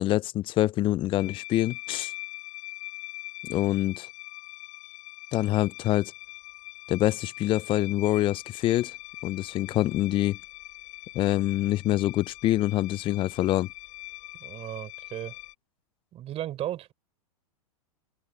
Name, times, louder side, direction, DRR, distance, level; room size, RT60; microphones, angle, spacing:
voice 1, 0.0-2.1 3.4-4.1 5.3-6.1 6.9-8.9 9.2-10.4 11.1-13.7, left 15 dB, 25° left, 0.5 m, -25 dB
sound 1, 1.2-15.5, left 20 dB, 40° left, 4.2 m, -43 dB
voice 2, 14.4-15.4 16.1-16.9, right 12 dB, 30° right, 4.1 m, -35 dB
open air
hypercardioid pair, 105°, 19 cm